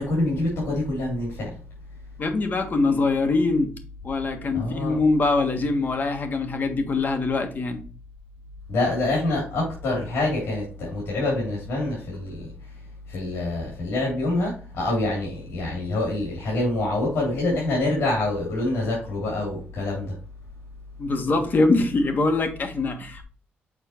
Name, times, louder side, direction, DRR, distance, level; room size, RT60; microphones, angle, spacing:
voice 1, 0.0-1.5 4.5-5.0 8.7-12.4 13.1-20.1, left 2 dB, 75° left, -4 dB, 3.2 m, -26 dB
voice 2, 2.2-3.7 4.0-7.8 21.0-23.2, left 3 dB, 45° left, 6 dB, 1.6 m, -23 dB
6.5 x 4.4 x 4.4 m, 0.39 s
cardioid pair, 90°, 4 cm